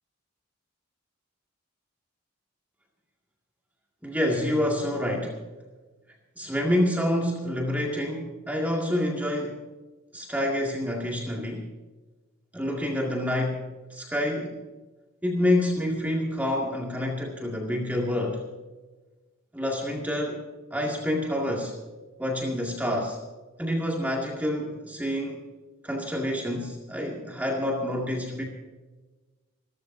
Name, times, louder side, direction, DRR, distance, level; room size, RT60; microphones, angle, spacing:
voice 1, 4.0-5.4 6.4-9.6 10.1-11.7 12.5-14.6 15.2-18.4 19.5-20.4 20.7-21.8 22.2-23.2 23.6-25.4 25.8-28.4, left 1 dB, 10° right, -2 dB, 2.1 m, -27 dB
29.0 x 13.5 x 2.7 m, 1.2 s
head